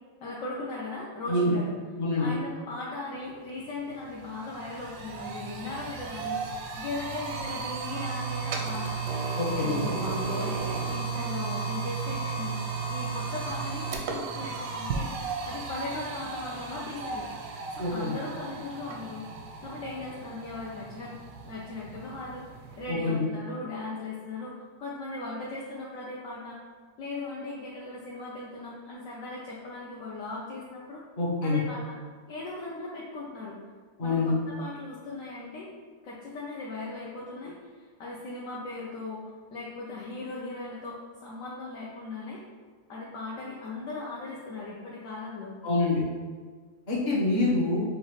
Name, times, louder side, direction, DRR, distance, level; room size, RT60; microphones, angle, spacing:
voice 1, 0.2-1.8 2.2-9.0 9.6-12.6 12.9-15.1 15.4-17.3 17.9-19.2 19.6-21.1 21.4-22.4 22.8-26.6 27.0-31.0 31.4-31.8 32.3-33.6 34.0-35.7 36.0-42.4 42.9-45.5, left 2 dB, 65° left, -5 dB, 0.8 m, -38 dB
sound 1, 3.5-3.6 3.9-22.9, right 4 dB, 80° right, 1.3 m, -34 dB
voice 2, 9.4-9.8 17.8-18.1 22.9-23.2 31.2-31.6 34.0-34.3 45.6-46.0 46.9-47.8, left 2 dB, 40° left, -6 dB, 1.2 m, -26 dB
6.4 x 2.5 x 3.1 m, 1.5 s
omnidirectional pair, 2.0 m